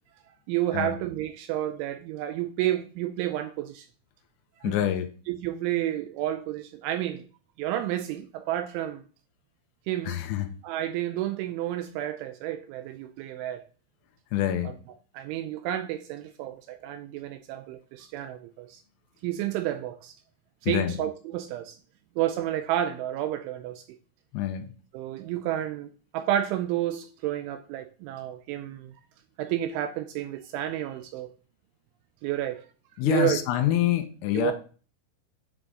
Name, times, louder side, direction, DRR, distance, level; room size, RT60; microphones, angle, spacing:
voice 1, 0.5-3.9 4.6-4.8 5.3-7.2 7.6-9.0 9.9-10.2 10.6-13.6 14.6-14.7 15.1-18.8 19.2-20.2 20.6-21.8 22.2-23.8 24.9-28.9 29.4-31.3 32.2-32.7 33.0-33.8 34.3-34.5, right 12 dB, 85° right, 2.8 m, -30 dB
voice 2, 4.6-5.1 10.1-10.5 14.3-14.7 20.7-20.9 24.3-24.7 33.0-34.5, left 12 dB, 90° left, 3.4 m, -26 dB
9.6 x 4.9 x 3.8 m
omnidirectional pair, 5.9 m